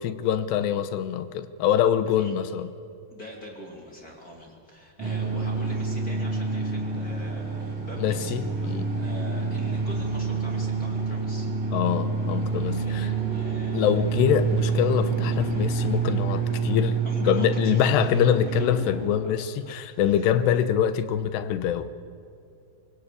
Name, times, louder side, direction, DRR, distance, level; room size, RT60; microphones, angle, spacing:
voice 1, 0.0-2.7 8.0-8.9 11.7-13.1 13.7-21.9, left 9 dB, 80° left, 12 dB, 3.0 m, -24 dB
voice 2, 3.1-11.5 12.8-13.9 17.0-18.1 18.6-18.8 19.2-19.8 20.1-20.3, equal, 25° left, 0 dB, 2.8 m, -44 dB
sound 1, 5.0-19.1, right 4 dB, 35° right, 3.5 m, -27 dB
24.5 x 20.5 x 8.5 m, 2.4 s
omnidirectional pair, 4.9 m